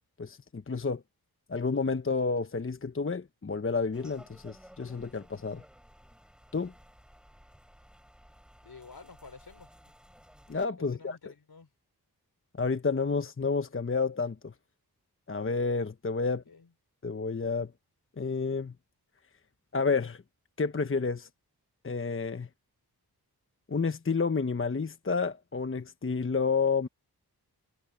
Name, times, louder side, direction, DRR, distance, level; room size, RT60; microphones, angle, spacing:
voice 1, 0.2-1.0 1.5-5.6 6.5-6.7 10.5-11.2 12.6-14.5 15.3-16.4 17.0-17.7 18.2-18.7 19.7-20.2 20.6-21.3 21.8-22.5 23.7-26.9, left 4 dB, 35° left, 1.0 m, -30 dB
sound 1, 3.9-10.7, equal, ahead, 4.0 m, -56 dB
voice 2, 8.6-9.9 10.8-11.7 16.4-16.7, left 4 dB, 70° left, 4.1 m, -51 dB
cardioid pair, 45°, 39 cm